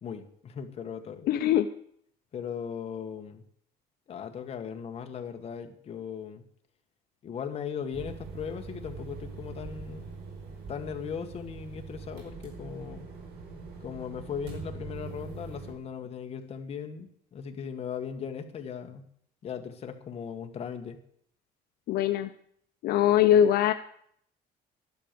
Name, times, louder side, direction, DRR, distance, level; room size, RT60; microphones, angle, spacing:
voice 1, 0.0-1.3 2.3-3.4 4.1-6.4 7.2-10.1 10.7-13.1 13.8-19.0 19.4-21.0, left 7 dB, 35° left, 5 dB, 1.6 m, -38 dB
voice 2, 1.3-1.7 21.9-22.3 22.8-23.7, left 10 dB, 70° left, 9 dB, 0.7 m, -22 dB
sound 1, 7.9-15.7, right 4 dB, 75° right, 5.3 m, -43 dB
12.0 x 11.5 x 6.9 m, 0.65 s
cardioid pair, 160°, 17 cm